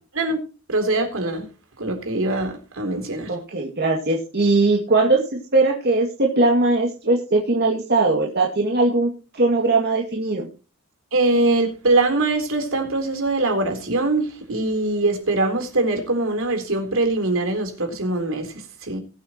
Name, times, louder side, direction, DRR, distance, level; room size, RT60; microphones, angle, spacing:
voice 1, 0.7-1.5 1.8-3.4 11.1-19.0, right 2 dB, 70° right, 3.6 m, -22 dB
voice 2, 3.3-5.2 5.5-10.5, right 2 dB, 50° right, 2.3 m, -20 dB
20.5 x 8.5 x 3.0 m
head